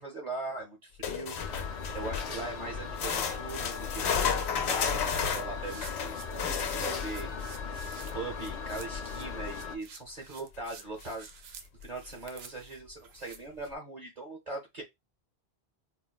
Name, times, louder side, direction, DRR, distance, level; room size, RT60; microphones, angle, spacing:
voice 1, 0.0-7.3 7.7-7.8 8.1-11.5 11.8-14.8, right 2 dB, 45° right, 1.0 m, -41 dB
sound 1, 1.0-2.4 3.0-7.3 10.5-10.6 11.0-11.1 11.8-11.9, left 6 dB, 80° left, 0.9 m, -32 dB
sound 2, 1.4-9.8, left 5 dB, 45° left, 0.5 m, -38 dB
sound 3, 4.4-13.7, right 7 dB, 75° right, 0.8 m, -51 dB
4.3 x 2.1 x 2.2 m
omnidirectional pair, 1.1 m